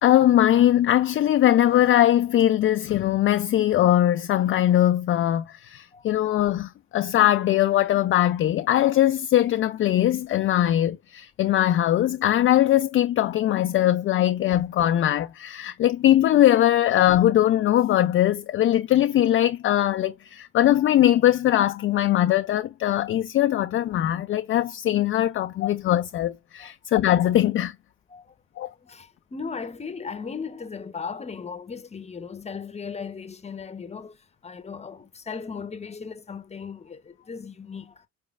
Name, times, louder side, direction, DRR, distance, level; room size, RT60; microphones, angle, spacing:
voice 1, 0.0-27.7 28.6-28.7, left 12 dB, 40° left, 0.4 m, -21 dB
voice 2, 28.6-34.2 34.4-38.1, left 5 dB, 20° left, 0.8 m, -37 dB
4.3 x 3.2 x 2.4 m
hypercardioid pair, 65°, 31 cm